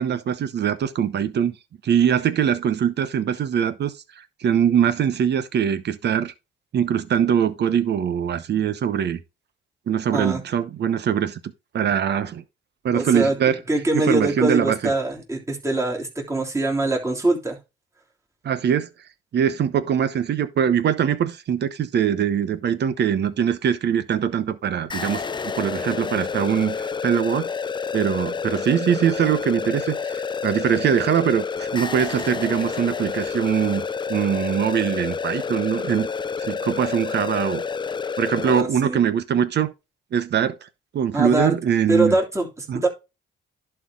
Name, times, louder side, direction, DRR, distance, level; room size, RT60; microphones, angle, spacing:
voice 1, 0.0-1.6 1.8-3.9 4.4-6.3 6.7-9.2 9.9-11.4 11.7-12.4 12.8-13.6 13.9-14.9 18.4-18.9 19.3-27.5 27.9-33.8 34.1-36.1 36.4-37.6 38.2-39.7 40.1-40.6 40.9-42.1 42.7-42.8, right 8 dB, 60° right, 1.0 m, -22 dB
voice 2, 12.9-13.4 13.7-17.6 38.4-39.0 41.1-41.5 41.9-42.9, right 2 dB, 15° right, 3.2 m, -23 dB
sound 1, 24.9-38.6, left 5 dB, 25° left, 0.5 m, -29 dB
11.0 x 4.6 x 3.7 m
cardioid pair, 90°, 20 cm